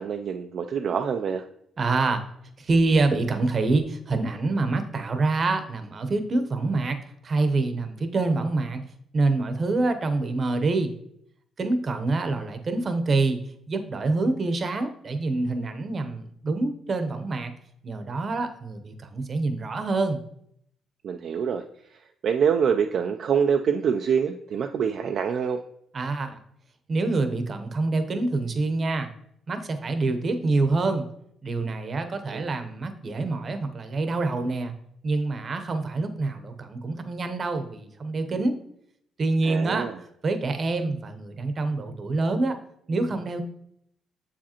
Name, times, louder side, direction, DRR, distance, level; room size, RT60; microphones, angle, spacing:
voice 1, 0.0-1.4 21.0-21.6 22.2-25.6 32.3-32.5 39.4-40.0, right 7 dB, 60° right, 5 dB, 0.3 m, -25 dB
voice 2, 1.8-2.2 2.6-7.0 7.2-8.8 9.1-10.9 11.6-13.4 13.7-17.5 17.8-20.2 25.9-26.4 26.9-29.1 29.5-31.0 31.4-34.7 35.0-38.6 39.2-39.9 40.2-42.6 42.9-43.4, right 3 dB, 40° right, 8 dB, 0.8 m, -26 dB
7.0 x 4.9 x 2.9 m, 0.71 s
cardioid pair, 90°, 0 cm